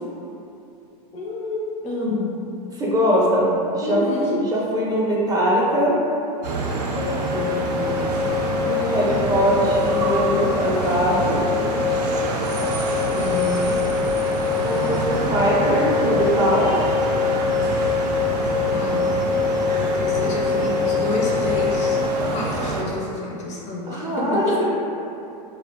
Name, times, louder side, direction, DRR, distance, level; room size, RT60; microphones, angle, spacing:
voice 1, 1.1-2.5 3.6-4.4 7.0-8.2 13.1-13.9 18.7-19.2 19.5-22.0 22.3-24.6, left 2 dB, 35° left, -3 dB, 0.4 m, -29 dB
voice 2, 2.8-4.0 4.5-6.0 8.7-11.4 14.6-16.7 23.9-24.6, equal, 20° right, -5 dB, 0.5 m, -21 dB
sound 1, 6.4-22.8, right 3 dB, 80° right, 0.4 m, -27 dB
sound 2, 6.9-22.1, left 6 dB, 80° left, 0.7 m, -25 dB
2.4 x 2.1 x 2.7 m, 2.8 s
hypercardioid pair, 105°, 21 cm